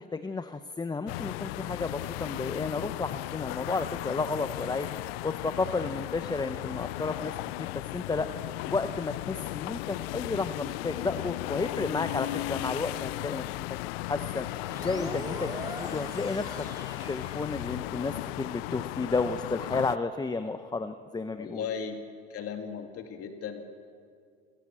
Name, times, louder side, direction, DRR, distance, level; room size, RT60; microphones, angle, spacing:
voice 1, 0.0-4.9 5.2-8.3 8.7-13.4 14.0-14.5 14.8-16.5 16.8-21.6, left 3 dB, 15° left, 9 dB, 0.9 m, -32 dB
sound 1, 1.1-20.0, left 19 dB, 90° left, 0.5 m, -36 dB
sound 2, 14.6-18.1, right 1 dB, 15° right, 3.7 m, -42 dB
voice 2, 21.4-22.0 22.3-23.6, left 7 dB, 55° left, 5 dB, 2.5 m, -36 dB
26.5 x 16.0 x 7.6 m, 2.2 s
supercardioid pair, 100°, 29 cm